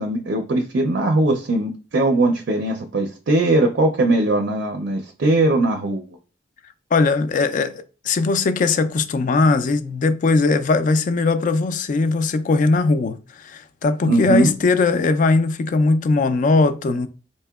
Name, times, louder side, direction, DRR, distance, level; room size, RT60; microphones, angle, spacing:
voice 1, 0.0-6.1 14.1-14.5, right 2 dB, 65° right, 0.4 m, -20 dB
voice 2, 6.9-17.1, left 3 dB, 45° left, 0.3 m, -19 dB
4.1 x 2.8 x 2.3 m
head